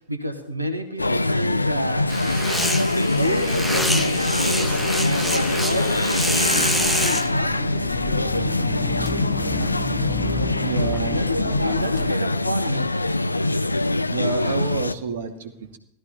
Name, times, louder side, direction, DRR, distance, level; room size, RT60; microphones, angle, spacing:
voice 1, 0.0-2.2 3.1-8.5 11.0-13.2, equal, 85° right, 7 dB, 1.7 m, -30 dB
sound 1, 1.0-14.9, left 2 dB, 85° left, 0.5 m, -23 dB
sound 2, 2.1-7.3, equal, ahead, 1.6 m, -26 dB
sound 3, 3.1-12.1, left 4 dB, 15° left, 0.7 m, -34 dB
voice 2, 10.6-11.7 14.1-15.8, right 6 dB, 60° right, 5 dB, 2.3 m, -30 dB
16.5 x 14.0 x 4.2 m, 0.72 s
figure-of-eight pair, 90°, 0 cm